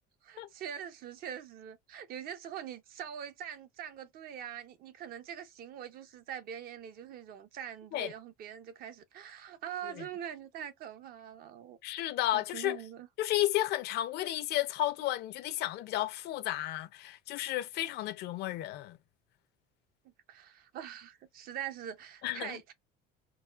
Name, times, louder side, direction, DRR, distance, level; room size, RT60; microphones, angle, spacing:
voice 1, 0.3-11.8 12.3-13.1 20.0-22.7, right 9 dB, 45° right, 0.6 m, -43 dB
voice 2, 11.8-12.8 13.2-19.0 22.2-22.6, left 14 dB, 55° left, 0.5 m, -33 dB
4.0 x 2.3 x 2.3 m
cardioid pair, 160°, 21 cm